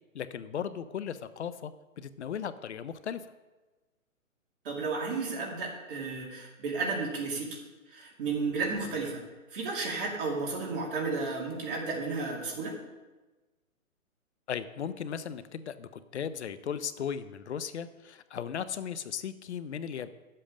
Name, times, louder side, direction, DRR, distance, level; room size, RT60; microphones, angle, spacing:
voice 1, 0.1-3.2 14.5-20.1, left 8 dB, 55° left, 13 dB, 0.6 m, -37 dB
voice 2, 4.6-7.6 7.9-9.2 9.5-12.8, right 4 dB, 40° right, -2 dB, 2.7 m, -33 dB
10.0 x 7.7 x 5.1 m, 1.2 s
hypercardioid pair, 155°, 42 cm